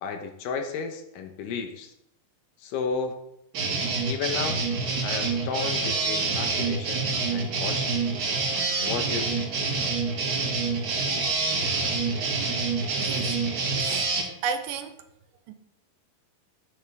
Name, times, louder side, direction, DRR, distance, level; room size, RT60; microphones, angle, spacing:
voice 1, 0.0-1.9 2.6-3.1 4.0-4.6 5.0-8.0 8.8-9.4, left 5 dB, 80° left, 5 dB, 2.6 m, -33 dB
sound 1, 3.5-14.2, right 4 dB, 60° right, 3.7 m, -27 dB
voice 2, 13.0-13.4 13.8-14.9 15.5-15.6, right 6 dB, 85° right, 8 dB, 2.4 m, -33 dB
10.0 x 8.1 x 3.5 m, 0.81 s
omnidirectional pair, 3.9 m